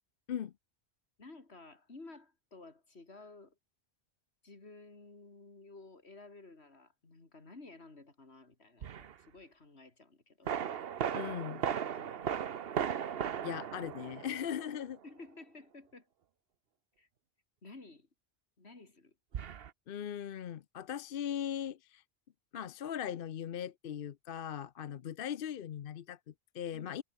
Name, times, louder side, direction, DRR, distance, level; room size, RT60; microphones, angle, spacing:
voice 1, 1.2-3.6 4.4-10.5 11.7-12.7 15.0-16.1 17.0-17.1 17.6-18.1 18.6-19.1 26.7-27.0, left 3 dB, 80° left, 3.4 m, -54 dB
sound 1, 8.8-9.1 10.5-14.9 19.3-19.7, right 8 dB, 65° right, 1.1 m, -37 dB
voice 2, 11.1-11.6 13.4-15.0 19.9-22.0 22.5-27.0, left 9 dB, 60° left, 0.8 m, -39 dB
omnidirectional pair, 1.1 m